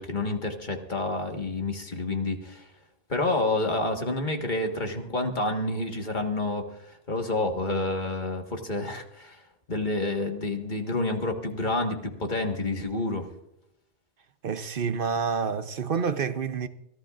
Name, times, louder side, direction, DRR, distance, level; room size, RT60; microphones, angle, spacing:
voice 1, 0.0-2.7 3.1-9.4 9.7-13.3, left 2 dB, 40° left, 1.7 m, -29 dB
voice 2, 14.4-16.7, right 5 dB, 55° right, 0.8 m, -28 dB
24.0 x 15.0 x 2.5 m
omnidirectional pair, 1.2 m